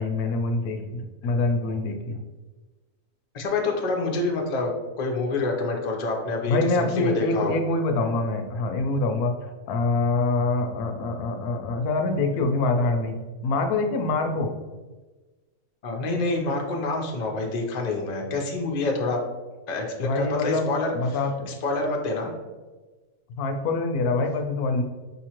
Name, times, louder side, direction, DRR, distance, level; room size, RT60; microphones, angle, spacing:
voice 1, 0.0-2.2 6.5-9.4 9.7-13.2 13.4-14.6 20.0-20.7 20.9-21.5 23.4-24.8, left 3 dB, 80° left, 5 dB, 1.0 m, -25 dB
voice 2, 3.3-7.5 15.8-19.2 19.7-21.2 21.4-22.3, left 3 dB, 55° left, 1 dB, 0.4 m, -27 dB
5.4 x 2.9 x 2.9 m, 1.2 s
omnidirectional pair, 1.6 m